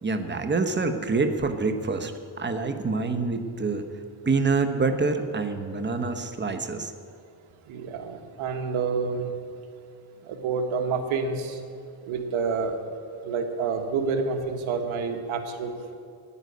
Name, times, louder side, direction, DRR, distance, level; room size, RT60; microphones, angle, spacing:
voice 1, 0.0-3.9 4.2-6.9, right 4 dB, 20° right, 7 dB, 1.1 m, -26 dB
voice 2, 7.7-9.3 10.3-11.5 12.1-12.8 13.2-15.9, right 5 dB, 80° right, 5 dB, 1.6 m, -28 dB
9.8 x 9.5 x 9.5 m, 2.4 s
cardioid pair, 110°, 48 cm